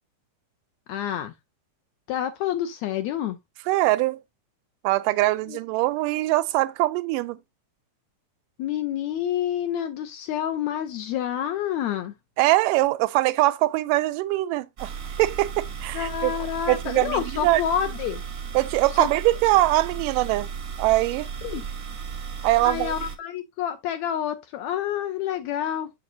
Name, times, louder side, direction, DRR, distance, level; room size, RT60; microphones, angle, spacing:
voice 1, 0.9-1.3 2.1-3.4 5.5-5.6 8.6-12.1 15.9-18.2 19.0-19.1 21.4-21.6 22.6-25.9, left 10 dB, 80° left, 1.6 m, -28 dB
voice 2, 3.7-4.2 4.8-7.4 12.4-14.9 15.2-16.4 16.7-17.6 18.5-20.5 20.8-21.3 22.4-22.9, right 18 dB, 90° right, 2.2 m, -22 dB
sound 1, 14.8-23.2, right 7 dB, 60° right, 0.8 m, -35 dB
7.2 x 6.8 x 2.6 m
omnidirectional pair, 3.7 m